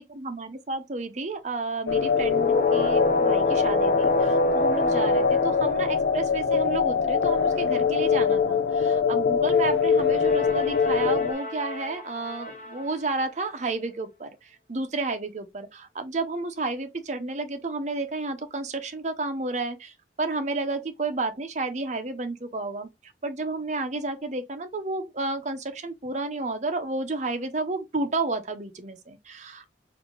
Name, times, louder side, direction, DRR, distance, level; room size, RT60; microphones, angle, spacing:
voice 1, 0.0-29.7, right 3 dB, 40° right, 0.7 m, -31 dB
sound 1, 1.6-12.0, right 2 dB, 15° right, 1.3 m, -43 dB
sound 2, 1.9-11.3, left 6 dB, 75° left, 0.4 m, -23 dB
sound 3, 2.1-6.7 10.1-12.9, left 1 dB, 45° left, 0.9 m, -28 dB
3.4 x 2.6 x 3.7 m
head